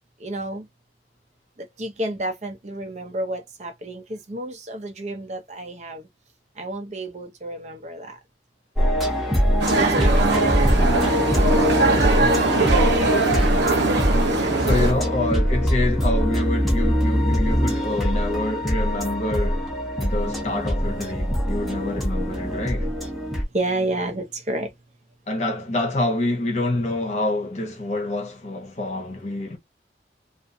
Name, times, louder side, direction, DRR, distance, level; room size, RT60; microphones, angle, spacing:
voice 1, 0.2-0.7 1.6-6.1 6.6-8.2 9.8-10.6 23.5-24.7, right 1 dB, 40° right, 0.5 m, -30 dB
sound 1, 8.8-23.4, equal, ahead, 0.7 m, -22 dB
sound 2, 9.6-14.9, right 3 dB, 90° right, 1.0 m, -21 dB
voice 2, 12.1-12.5 14.6-19.7 20.0-22.9 25.3-29.6, left 2 dB, 40° left, 0.8 m, -27 dB
2.5 x 2.4 x 2.6 m
head